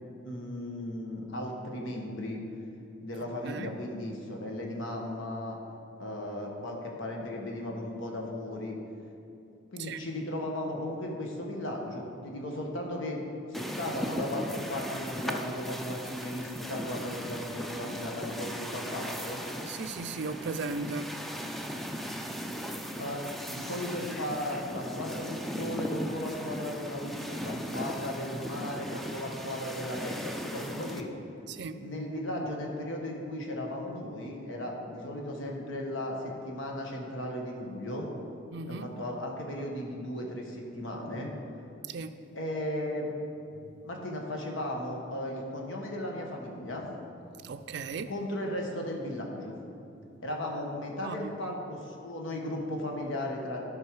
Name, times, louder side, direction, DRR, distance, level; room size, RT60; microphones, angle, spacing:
voice 1, 0.2-2.4 3.0-5.6 6.0-8.8 9.7-13.2 13.5-19.4 22.9-31.1 31.8-38.1 38.7-41.3 42.3-43.1 43.8-46.9 48.1-49.6 50.2-53.6, left 1 dB, 70° left, 0 dB, 1.4 m, -36 dB
sound 1, 13.5-31.0, equal, ahead, 0.4 m, -38 dB
voice 2, 19.7-21.2 31.5-31.8 38.5-38.9 41.9-42.2 43.6-43.8 47.4-48.1 51.0-51.3, right 4 dB, 60° right, 10 dB, 0.4 m, -37 dB
11.5 x 5.4 x 4.7 m, 2.6 s
head